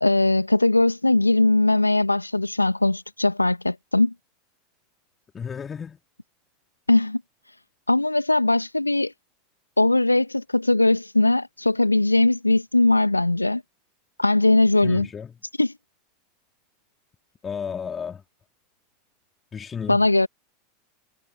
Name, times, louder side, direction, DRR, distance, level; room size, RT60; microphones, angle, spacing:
voice 1, 0.0-4.1 6.9-7.2 7.9-9.1 9.8-13.6 14.2-15.1 15.6-15.7 19.9-20.3, left 2 dB, 85° left, 1.7 m, -20 dB
voice 2, 5.3-6.0 14.8-15.3 17.4-18.2 19.5-20.0, left 6 dB, 25° left, 3.7 m, -33 dB
figure-of-eight pair, 85°, 0 cm